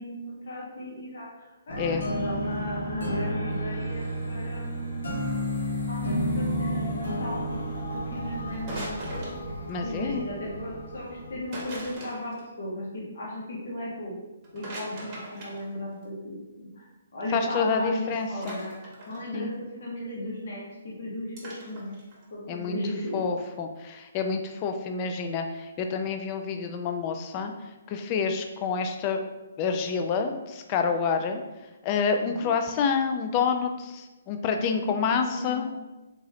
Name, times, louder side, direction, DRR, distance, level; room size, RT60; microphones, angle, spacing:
voice 1, 0.0-5.2 5.9-7.6 7.9-9.3 9.8-14.1 14.5-16.9 17.1-18.7 19.1-22.0 22.3-23.2 32.2-32.5 34.7-35.7, left 1 dB, 60° left, -6 dB, 1.3 m, -36 dB
sound 1, 1.7-11.9, equal, 85° left, 1.3 m, -32 dB
sound 2, 8.5-9.7 11.5-12.4 14.4-16.0 18.4-19.2 21.4-22.3, right 1 dB, 25° right, 1.0 m, -40 dB
voice 2, 9.7-10.3 17.3-18.6 19.3-19.5 22.5-22.8 23.1-27.5 27.9-29.2 29.6-31.4 31.8-35.8, left 5 dB, 25° left, 5 dB, 0.3 m, -28 dB
3.7 x 3.0 x 2.8 m, 1.1 s
hypercardioid pair, 160°, 0 cm